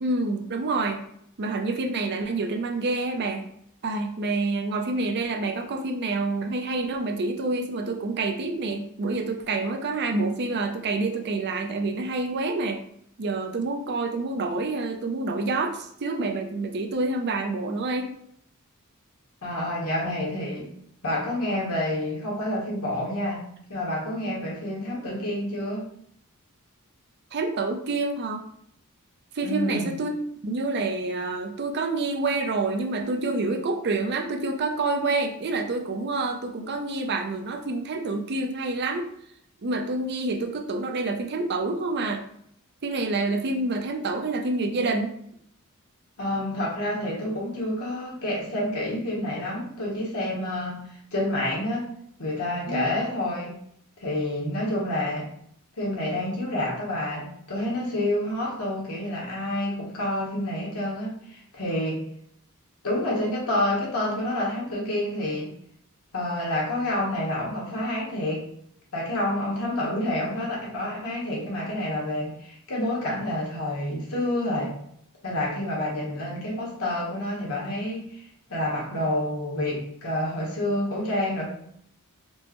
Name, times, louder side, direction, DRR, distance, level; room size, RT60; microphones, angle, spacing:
voice 1, 0.0-1.0 1.4-3.5 3.8-12.8 13.2-18.1 24.2-24.3 27.3-28.4 29.3-30.2 30.4-39.1 39.6-42.3 42.8-45.1 52.7-52.9, right 3 dB, 50° right, 4 dB, 0.5 m, -27 dB
voice 2, 19.4-20.7 21.0-25.9 29.4-29.9 46.2-51.9 52.2-53.6 54.0-55.3 55.8-62.1 62.8-65.5 66.1-68.4 68.9-74.8 75.2-78.2 78.5-81.4, left 1 dB, 75° left, -4 dB, 1.1 m, -28 dB
4.4 x 2.2 x 2.9 m, 0.69 s
head